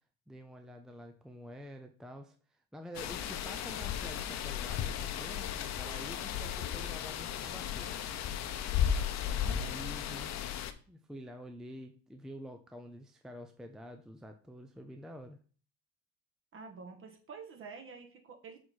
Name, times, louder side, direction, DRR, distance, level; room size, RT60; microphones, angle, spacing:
voice 1, 0.3-8.1 9.2-15.4, equal, ahead, 5 dB, 0.5 m, -48 dB
sound 1, 2.9-10.7, left 9 dB, 55° left, 0.8 m, -35 dB
voice 2, 9.4-9.7 16.5-18.6, right 5 dB, 40° right, 4 dB, 1.7 m, -48 dB
6.4 x 4.2 x 4.6 m, 0.41 s
cardioid pair, 125°, 33 cm